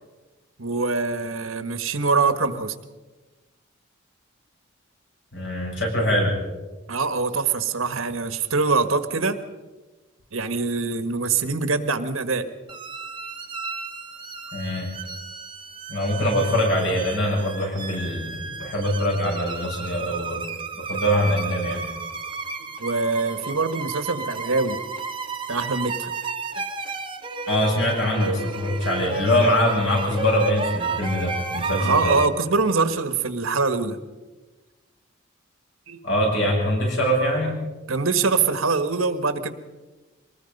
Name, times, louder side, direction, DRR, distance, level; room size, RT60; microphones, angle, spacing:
voice 1, 0.6-2.7 6.9-9.4 10.3-12.5 18.6-18.7 22.8-24.8 25.5-26.1 26.5-26.6 31.8-34.0 35.9-36.0 37.9-39.5, right 4 dB, 85° right, 10 dB, 1.5 m, -24 dB
voice 2, 5.3-6.4 14.5-14.9 15.9-20.4 20.8-21.8 27.5-32.1 36.0-37.5, equal, 60° left, -1 dB, 7.5 m, -23 dB
sound 1, 12.7-32.3, right 4 dB, 25° right, 1.1 m, -33 dB
24.0 x 20.0 x 5.4 m, 1.2 s
head